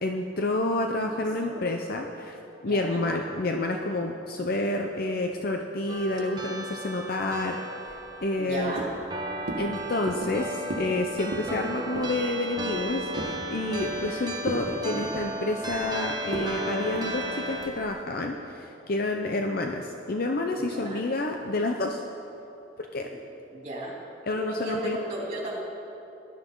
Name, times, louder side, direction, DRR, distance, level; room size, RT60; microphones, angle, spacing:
voice 1, 0.0-7.6 8.2-8.7 9.6-22.0 22.9-23.1 24.2-25.0, left 2 dB, 50° left, 3 dB, 0.7 m, -29 dB
voice 2, 1.2-1.6 2.7-3.0 8.4-8.9 14.7-15.1 20.7-21.0 23.1-23.2 23.5-24.0 24.3-25.6, right 1 dB, 35° right, -3 dB, 3.1 m, -35 dB
sound 1, 5.9-17.7, right 1 dB, 20° right, 1.3 m, -35 dB
sound 2, 7.9-8.5 8.8-9.1 9.5-9.7 10.1-10.4 10.7-11.0 11.2-11.5 11.9-12.2 12.6-13.4 13.8-14.1 14.4-14.7 15.0-15.9 16.3-16.5 16.9-17.1 17.6-17.9, right 1 dB, 55° right, 1.5 m, -36 dB
19.5 x 12.0 x 3.9 m, 2.9 s
head